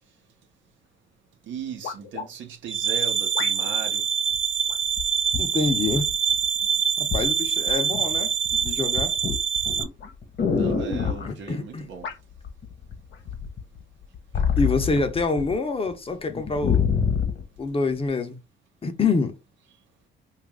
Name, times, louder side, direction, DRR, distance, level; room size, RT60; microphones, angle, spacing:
sound 1, 0.9-1.0 1.8-2.3 3.3-3.9 4.7-4.9 5.9-6.3 7.1-7.3 9.2-9.4 10.0-10.2 11.0-11.1 12.0-12.3 13.1-13.3, left 6 dB, 70° left, 0.7 m, -37 dB
voice 1, 1.5-4.0 10.5-12.1, right 6 dB, 75° right, 0.9 m, -37 dB
sound 2, 2.7-9.8, right 7 dB, 30° right, 0.7 m, -25 dB
sound 3, 4.3-4.4 5.0-6.5 7.1-7.3 7.7-8.1 8.4-11.3 12.4-12.9 13.3-15.5 15.9-16.0 16.3-17.4 18.1-18.2, left 6 dB, 55° left, 1.1 m, -26 dB
voice 2, 5.4-6.1 7.0-9.2 11.2-11.9 14.6-16.9 17.6-18.4 18.8-19.3, left 4 dB, 30° left, 0.7 m, -26 dB
2.9 x 2.4 x 3.5 m
cardioid pair, 90°, 20 cm